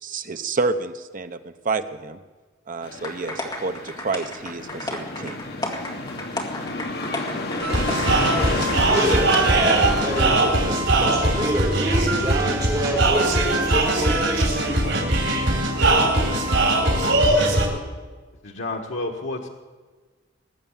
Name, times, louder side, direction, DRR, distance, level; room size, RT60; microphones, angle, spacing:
voice 1, 0.0-2.2 2.7-5.4, right 3 dB, 45° right, 9 dB, 0.8 m, -29 dB
sound 1, 2.8-10.5, left 2 dB, 60° left, 1.5 m, -30 dB
sound 2, 3.0-9.0 9.3-9.4, left 2 dB, 20° left, 2.0 m, -33 dB
sound 3, 7.6-17.7, right 2 dB, 85° right, 4.0 m, -20 dB
voice 2, 8.8-14.6, right 1 dB, 20° right, -6 dB, 6.5 m, -26 dB
voice 3, 18.4-19.5, left 2 dB, 85° left, 0 dB, 1.3 m, -30 dB
20.0 x 8.3 x 7.3 m, 1.4 s
head